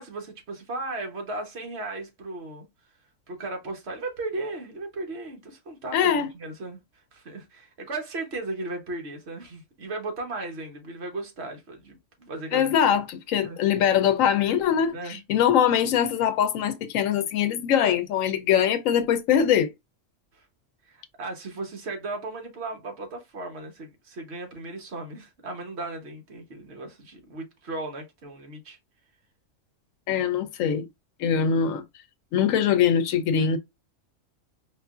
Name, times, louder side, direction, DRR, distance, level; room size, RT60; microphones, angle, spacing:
voice 1, 0.0-2.7 3.3-12.7 13.4-13.6 14.9-15.2 20.3-20.5 20.9-28.8 33.4-33.5, right 2 dB, 60° right, 1.1 m, -36 dB
voice 2, 5.9-6.3 12.5-19.7 30.1-30.9 31.2-31.8 32.3-33.6, left 8 dB, 85° left, 1.0 m, -22 dB
4.8 x 2.4 x 2.3 m
omnidirectional pair, 1.3 m